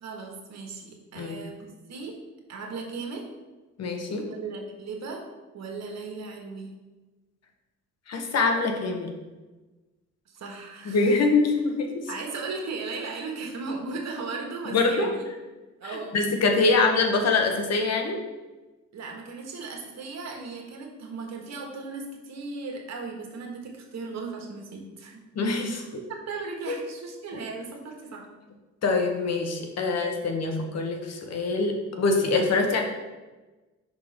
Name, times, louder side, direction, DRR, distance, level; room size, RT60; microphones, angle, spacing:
voice 1, 0.0-2.1 2.5-3.2 4.2-5.2 5.5-6.7 10.3-11.2 12.1-15.3 15.8-16.2 18.9-25.2 25.7-28.2 29.9-30.0, right 4 dB, 60° right, 1 dB, 1.3 m, -37 dB
voice 2, 3.8-4.3 8.1-9.1 10.9-12.0 14.7-15.1 16.1-18.2 25.4-25.8 26.7-26.8 28.8-32.8, left 3 dB, 55° left, 3 dB, 1.0 m, -24 dB
5.6 x 3.7 x 5.0 m, 1.2 s
cardioid pair, 90°, 30 cm